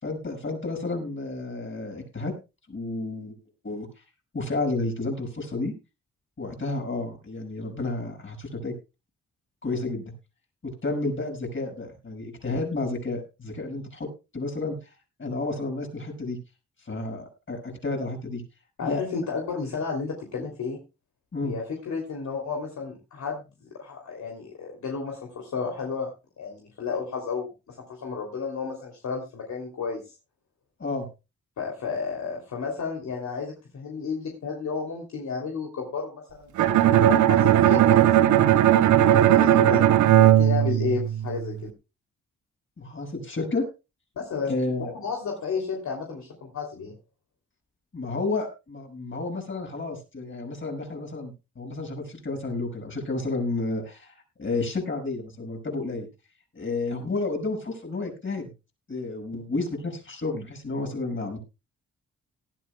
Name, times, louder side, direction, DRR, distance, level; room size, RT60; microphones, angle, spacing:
voice 1, 0.0-2.3 2.7-3.3 3.6-3.9 4.3-5.7 6.4-8.7 9.6-10.0 10.6-14.1 14.3-14.7 15.2-16.4 16.8-18.4 18.8-19.0 21.3-21.5 30.8-31.1 39.4-39.8 42.8-43.7 44.4-44.9 47.9-56.1 56.5-58.5 58.9-61.4, left 3 dB, 40° left, 3 dB, 6.5 m, -31 dB
voice 2, 18.8-20.8 21.4-26.1 26.4-27.8 28.0-30.1 31.6-38.2 39.1-39.9 40.2-41.7 44.2-47.0, left 5 dB, 70° left, 0 dB, 3.1 m, -32 dB
Bowed string instrument, 36.6-41.5, right 12 dB, 80° right, 0.9 m, -18 dB
18.5 x 12.5 x 2.3 m, 0.28 s
cardioid pair, 60°, 29 cm